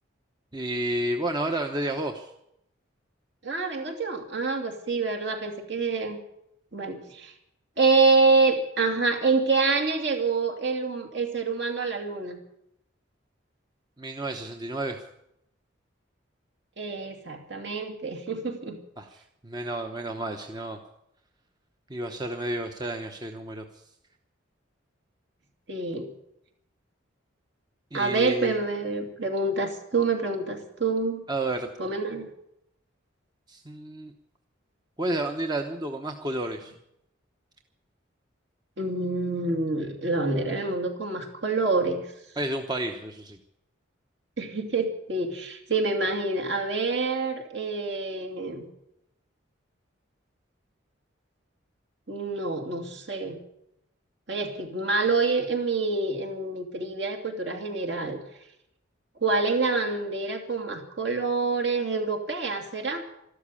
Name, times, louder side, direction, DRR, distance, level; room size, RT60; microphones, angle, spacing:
voice 1, 0.5-2.3 14.0-15.0 19.0-19.1 19.4-20.8 21.9-23.6 27.9-28.6 31.3-31.7 33.5-34.1 35.0-36.7 42.4-43.4, right 1 dB, 20° right, 4 dB, 0.9 m, -31 dB
voice 2, 3.4-6.2 6.7-7.3 7.8-12.4 16.8-18.8 25.7-26.1 27.9-31.2 31.8-32.3 38.8-42.1 44.4-48.7 52.1-53.4 54.3-58.2 59.2-63.0, right 3 dB, 60° right, 4 dB, 2.7 m, -27 dB
13.0 x 12.5 x 8.5 m, 0.78 s
head